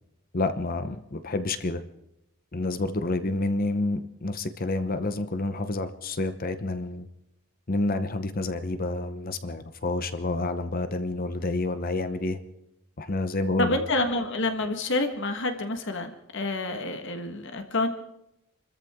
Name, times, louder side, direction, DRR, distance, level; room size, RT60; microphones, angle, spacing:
voice 1, 0.3-1.8 2.5-7.1 7.7-12.4 13.0-13.8, left 2 dB, 45° left, 10 dB, 0.9 m, -29 dB
voice 2, 13.6-17.9, left 2 dB, 60° left, 6 dB, 1.6 m, -28 dB
28.0 x 14.0 x 3.7 m, 0.84 s
head